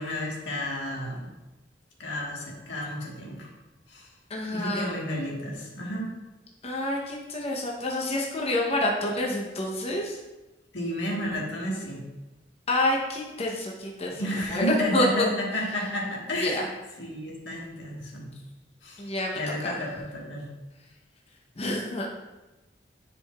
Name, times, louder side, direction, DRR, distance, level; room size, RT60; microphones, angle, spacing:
voice 1, 0.0-1.3 2.0-3.5 3.9-4.1 4.5-6.1 10.7-12.0 14.0-16.7 17.0-18.3 18.8-19.1 19.3-20.5, equal, 85° left, -2 dB, 1.5 m, -31 dB
voice 2, 4.3-5.0 6.6-10.2 12.7-15.3 16.4-16.6 19.0-19.8 21.6-22.1, left 1 dB, 35° left, -2 dB, 0.8 m, -28 dB
11.0 x 4.6 x 2.4 m, 1.1 s
head